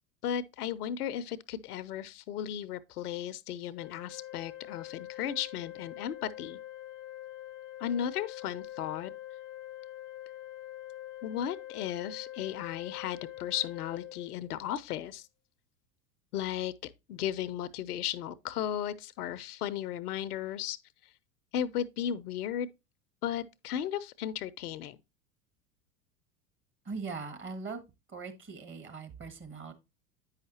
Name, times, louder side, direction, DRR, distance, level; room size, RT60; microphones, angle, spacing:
voice 1, 0.2-6.6 7.8-9.1 11.2-15.3 16.3-16.7 17.1-20.8 21.5-22.7 23.2-25.0, left 10 dB, 70° left, 0.6 m, -35 dB
Organ, 3.8-14.8, left 14 dB, 30° left, 0.4 m, -45 dB
voice 2, 26.8-27.8 28.1-29.7, right 4 dB, 25° right, 1.4 m, -40 dB
8.6 x 5.6 x 2.8 m
figure-of-eight pair, 85°, 47 cm